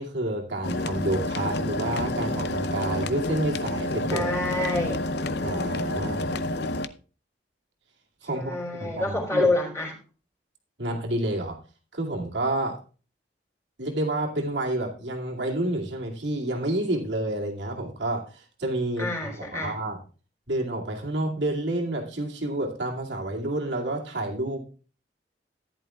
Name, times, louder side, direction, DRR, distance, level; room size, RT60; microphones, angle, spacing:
voice 1, 0.0-4.3 5.4-6.3 8.2-9.5 10.8-11.6 11.9-12.8 13.8-20.0 20.5-24.6, right 1 dB, 85° right, -1 dB, 2.4 m, -29 dB
sound 1, 0.6-6.9, left 1 dB, 65° left, 0.6 m, -29 dB
voice 2, 4.1-5.0 8.3-9.9 19.0-19.7, left 2 dB, 15° left, -1 dB, 3.5 m, -27 dB
14.5 x 10.5 x 2.4 m, 0.36 s
head